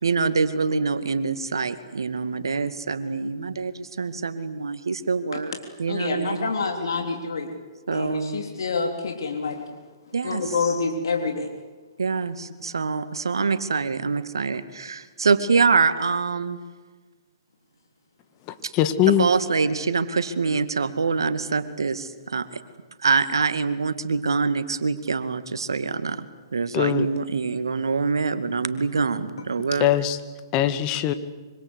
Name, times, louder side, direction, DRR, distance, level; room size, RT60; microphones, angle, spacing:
voice 1, 0.0-5.5 5.8-6.5 7.9-8.4 10.1-10.5 12.0-16.6 18.6-18.7 19.1-22.5 23.0-26.3 26.5-29.9, right 4 dB, 80° right, 2.2 m, -25 dB
voice 2, 5.9-7.5 7.9-9.6 10.2-11.5 12.7-12.8, left 4 dB, 70° left, 3.6 m, -27 dB
voice 3, 18.5-19.3 26.7-27.1 29.8-30.2 30.5-31.1, left 11 dB, 30° left, 2.2 m, -21 dB
25.5 x 25.5 x 8.2 m
hypercardioid pair, 125°, 2 cm